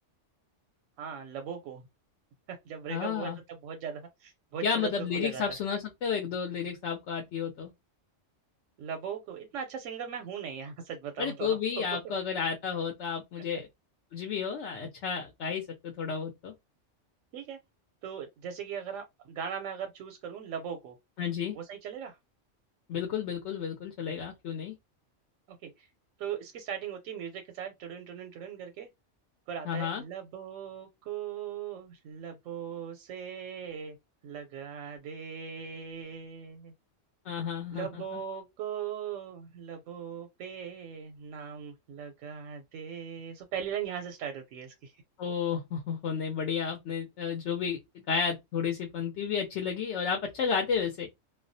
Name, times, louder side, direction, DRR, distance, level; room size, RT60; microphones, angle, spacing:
voice 1, 1.0-1.8 2.5-5.4 8.8-11.6 17.3-17.6 18.0-21.0 21.5-22.2 25.5-25.9 26.2-28.9 29.5-34.0 34.2-36.7 37.7-44.9, right 8 dB, 90° right, 0.9 m, -39 dB
voice 2, 2.9-3.4 4.6-7.7 11.2-13.7 14.1-16.5 21.2-21.6 22.9-24.8 29.6-30.0 37.3-38.2 45.2-51.1, left 6 dB, 70° left, 0.8 m, -32 dB
2.3 x 2.0 x 2.6 m
omnidirectional pair, 1.3 m